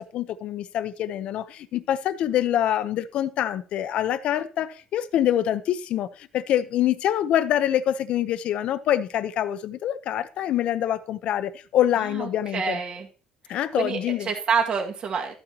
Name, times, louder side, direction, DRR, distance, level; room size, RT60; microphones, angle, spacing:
voice 1, 0.0-12.8 13.5-14.3, left 11 dB, 65° left, 0.8 m, -25 dB
voice 2, 12.0-13.1 13.5-15.3, right 6 dB, 50° right, 2.1 m, -28 dB
13.0 x 8.9 x 3.0 m
cardioid pair, 125°, 2 cm